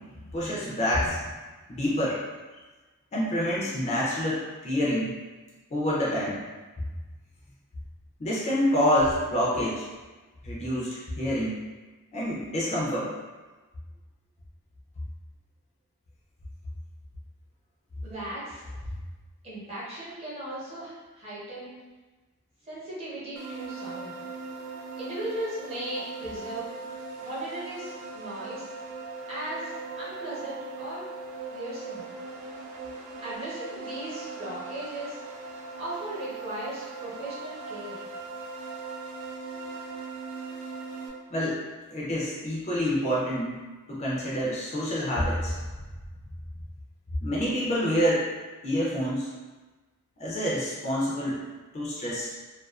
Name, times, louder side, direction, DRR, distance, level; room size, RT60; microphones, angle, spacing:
voice 1, 0.3-1.2 1.7-2.2 3.1-5.1 5.7-6.4 8.2-9.8 10.4-11.6 12.1-13.1 41.3-41.6 41.9-43.6 43.9-45.5 47.2-48.3 48.6-49.3 50.2-51.4 51.7-52.3, equal, 30° left, -6 dB, 0.4 m, -27 dB
voice 2, 18.0-18.7 19.4-21.7 22.7-24.2 25.0-26.7 27.2-28.7 29.3-31.0 31.5-32.0 33.2-35.2 35.8-38.0, right 1 dB, 25° right, -8 dB, 0.7 m, -37 dB
sound 1, 23.4-41.1, right 3 dB, 65° right, 0.4 m, -39 dB
2.3 x 2.3 x 2.3 m, 1.2 s
head